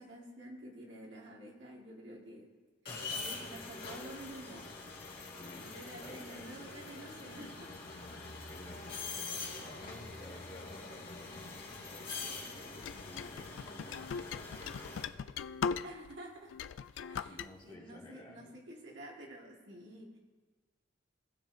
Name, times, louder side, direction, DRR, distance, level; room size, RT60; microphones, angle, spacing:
voice 1, 0.0-2.5 3.1-4.8 5.5-7.9 15.8-16.6 17.1-20.2, right 1 dB, 65° right, -2 dB, 2.0 m, -50 dB
sound 1, 2.9-15.0, left 3 dB, 50° left, 1.9 m, -44 dB
voice 2, 2.9-3.5 5.3-6.6 8.3-14.7 17.3-18.5, left 1 dB, 25° left, -6 dB, 2.4 m, -54 dB
sound 2, 12.8-16.2 16.5-17.5, left 6 dB, 70° left, 0.3 m, -39 dB
20.0 x 7.3 x 2.7 m, 1.4 s
head